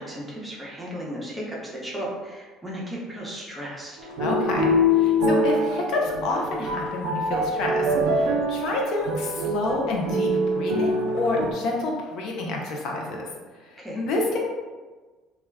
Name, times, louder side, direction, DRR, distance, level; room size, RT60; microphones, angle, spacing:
voice 1, 0.0-4.0 13.8-14.0, equal, 10° right, -5 dB, 0.7 m, -35 dB
sound 1, 4.0-11.5, left 1 dB, 80° right, 0.4 m, -24 dB
voice 2, 4.2-4.7 4.9-13.3 13.5-14.4, left 2 dB, 65° left, 0 dB, 0.5 m, -28 dB
2.3 x 2.1 x 3.4 m, 1.3 s
cardioid pair, 125°, 0 cm